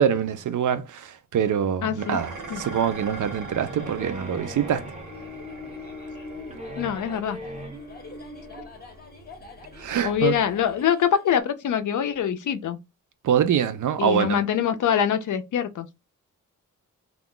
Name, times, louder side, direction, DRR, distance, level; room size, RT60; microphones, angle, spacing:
voice 1, 0.0-4.9 9.8-10.3 13.2-14.4, right 8 dB, 70° right, 0.5 m, -24 dB
voice 2, 1.8-2.2 2.5-2.6 6.8-7.4 10.0-12.8 14.0-15.9, left 9 dB, 70° left, 0.5 m, -24 dB
Dishes pots and pans, 2.0-10.8, right 2 dB, 90° right, 1.0 m, -42 dB
sound 1, 3.4-8.7, left 1 dB, 25° right, 0.5 m, -39 dB
sound 2, 4.7-11.4, left 3 dB, 30° left, 0.6 m, -47 dB
2.4 x 2.2 x 3.6 m
wide cardioid pair, 175°, 31 cm